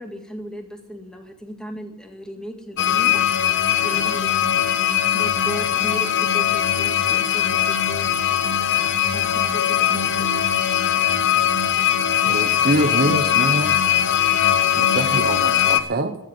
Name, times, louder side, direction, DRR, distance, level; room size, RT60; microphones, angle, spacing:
voice 1, 0.0-3.2 3.8-4.8 5.1-8.1 9.1-10.4, equal, 5° left, 3 dB, 2.0 m, -36 dB
sound 1, 2.8-15.8, left 10 dB, 55° left, 1.0 m, -20 dB
voice 2, 12.2-13.8 14.7-16.2, right 2 dB, 45° right, 8 dB, 1.0 m, -24 dB
14.5 x 8.2 x 9.6 m, 0.83 s
head